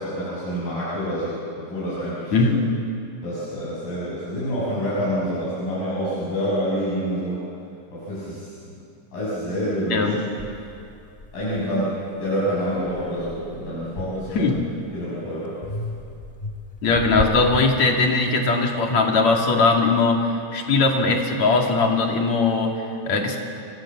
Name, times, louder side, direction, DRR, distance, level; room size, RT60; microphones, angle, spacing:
voice 1, 0.0-2.6 3.2-7.4 7.9-8.5 9.1-10.2 11.3-14.5 14.9-15.6, equal, 70° left, -9 dB, 8.2 m, -27 dB
sound 1, 9.6-9.7 10.4-12.2 12.7-15.0 15.6-18.4, left 2 dB, 20° left, 1.4 m, -35 dB
voice 2, 16.8-23.4, left 3 dB, 55° left, 1 dB, 3.4 m, -20 dB
29.0 x 24.0 x 7.4 m, 2.6 s
omnidirectional pair, 4.0 m